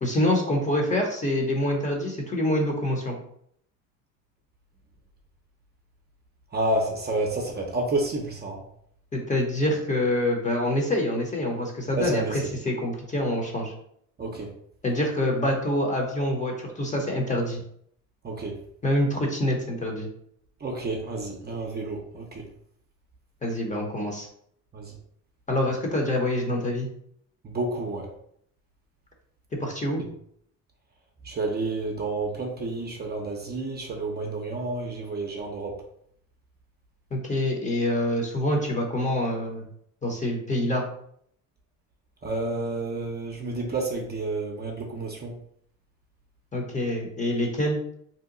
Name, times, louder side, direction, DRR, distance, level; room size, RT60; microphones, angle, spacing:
voice 1, 0.0-3.2 9.1-13.7 14.8-17.6 18.8-20.1 23.4-24.3 25.5-26.9 29.6-30.0 37.1-39.7 40.0-40.8 46.5-47.8, left 1 dB, 20° left, 1 dB, 0.8 m, -26 dB
voice 2, 6.5-8.6 11.9-12.4 14.2-14.5 18.2-18.6 20.6-22.4 24.7-24.9 27.4-28.1 31.2-35.8 42.2-45.3, right 2 dB, 30° right, 1 dB, 0.6 m, -30 dB
2.8 x 2.2 x 3.8 m, 0.67 s
cardioid pair, 100°, 35 cm